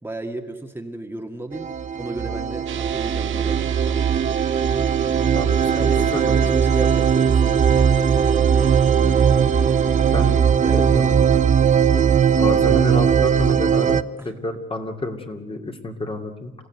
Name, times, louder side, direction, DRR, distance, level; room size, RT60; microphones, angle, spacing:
voice 1, 0.0-4.4 5.7-8.8 10.6-11.2 14.2-14.3, right 2 dB, 10° right, 3 dB, 1.9 m, -34 dB
sound 1, 1.5-14.0, right 7 dB, 40° right, 0.8 m, -19 dB
sound 2, 2.7-10.4, right 13 dB, 75° right, 1.1 m, -33 dB
voice 2, 5.3-6.4 10.1-10.5 10.8-11.0 12.4-16.5, left 2 dB, 25° left, 3 dB, 2.8 m, -30 dB
sound 3, 9.4-14.0, left 5 dB, 75° left, 7.0 m, -40 dB
29.0 x 15.5 x 9.4 m, 1.2 s
cardioid pair, 90°, 20 cm